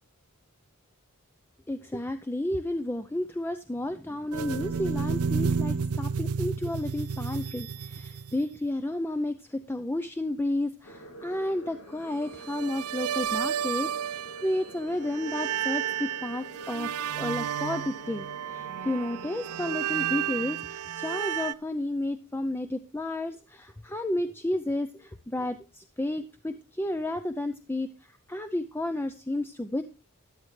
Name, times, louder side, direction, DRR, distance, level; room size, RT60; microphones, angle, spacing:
voice 1, 1.7-29.8, left 1 dB, 10° left, 9 dB, 0.5 m, -32 dB
sound 1, 4.3-8.5 12.4-14.7 15.0-21.5, right 7 dB, 75° right, 0.4 m, -31 dB
sound 2, 10.8-20.4, right 2 dB, 85° left, 2.6 m, -46 dB
12.5 x 10.5 x 3.2 m, 0.32 s
head